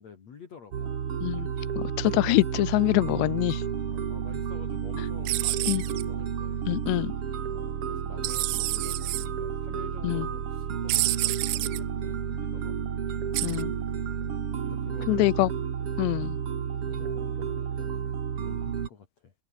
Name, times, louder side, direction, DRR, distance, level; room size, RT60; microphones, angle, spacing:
voice 1, 0.0-1.1 3.8-6.7 7.5-13.0 14.2-15.3 16.9-19.3, left 6 dB, 40° left, 3.6 m, -48 dB
sound 1, 0.7-18.9, right 8 dB, 45° right, 1.9 m, -31 dB
voice 2, 1.8-3.6 5.7-5.8 6.7-7.1 10.0-10.3 13.4-13.7 15.1-15.5 16.0-16.4, left 20 dB, 80° left, 2.9 m, -25 dB
sound 2, 5.3-6.0 8.2-9.3 10.9-11.8 13.3-13.6, right 22 dB, 80° right, 2.7 m, -28 dB
open air
omnidirectional pair, 5.1 m